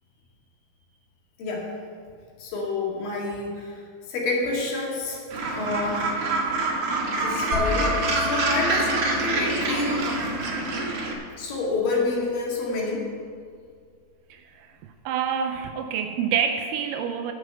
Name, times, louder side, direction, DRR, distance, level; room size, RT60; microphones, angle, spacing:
voice 1, 2.4-3.8 4.1-5.2 5.5-6.1 7.2-8.9 9.2-10.1 11.4-13.1, left 3 dB, 75° left, -3 dB, 3.8 m, -28 dB
Gull seagull, 5.3-11.1, right 2 dB, 50° right, 1.8 m, -26 dB
sound 1, 7.5-11.3, left 4 dB, 55° left, 2.0 m, -33 dB
voice 2, 14.3-14.7 15.1-17.3, right 7 dB, 80° right, 6 dB, 2.2 m, -27 dB
10.0 x 9.7 x 6.8 m, 2.1 s
omnidirectional pair, 4.0 m